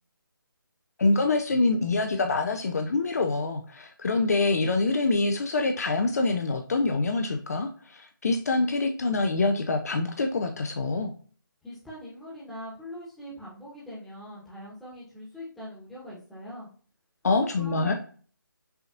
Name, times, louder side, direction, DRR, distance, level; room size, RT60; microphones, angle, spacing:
voice 1, 1.0-11.1 17.2-17.9, left 3 dB, 45° left, 5 dB, 0.5 m, -25 dB
voice 2, 11.6-16.7 17.2-17.9, equal, ahead, -9 dB, 1.1 m, -42 dB
5.6 x 2.9 x 2.5 m, 0.42 s
figure-of-eight pair, 155°, 12 cm